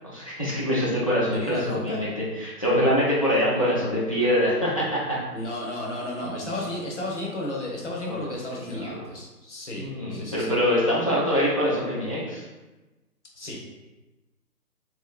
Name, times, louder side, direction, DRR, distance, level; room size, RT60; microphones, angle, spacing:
voice 1, 0.0-5.2 6.2-6.6 8.1-8.3 8.6-9.0 9.7-12.5, equal, 20° left, -8 dB, 0.5 m, -25 dB
voice 2, 1.3-2.0 5.3-9.8 10.1-10.5 13.4-13.6, left 1 dB, 50° left, -2 dB, 1.1 m, -33 dB
3.2 x 2.9 x 3.8 m, 1.1 s
hypercardioid pair, 160°, 47 cm